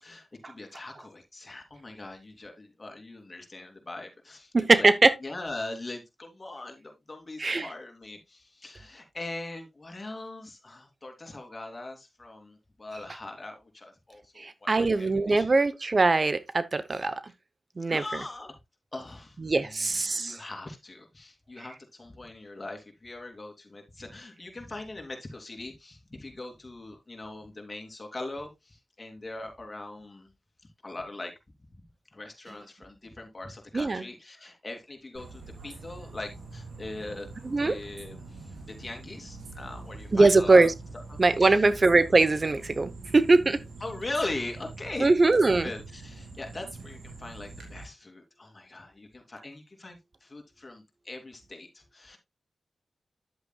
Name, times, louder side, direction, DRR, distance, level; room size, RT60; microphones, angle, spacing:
voice 1, 0.0-4.9 5.2-15.5 17.9-18.5 18.9-30.3 30.8-31.3 31.7-31.8 32.1-37.3 37.6-40.7 41.1-41.7 43.8-45.1 45.4-52.2, left 2 dB, 40° left, 2.9 m, -41 dB
voice 2, 4.5-5.1 7.4-7.7 14.4-17.2 17.8-18.0 19.4-20.4 33.7-34.0 37.5-37.7 40.1-40.7 41.2-43.6 45.0-45.7, right 3 dB, 50° right, 0.8 m, -22 dB
sound 1, 35.2-47.8, right 3 dB, 90° right, 3.5 m, -44 dB
10.0 x 8.0 x 2.3 m
cardioid pair, 45°, 0 cm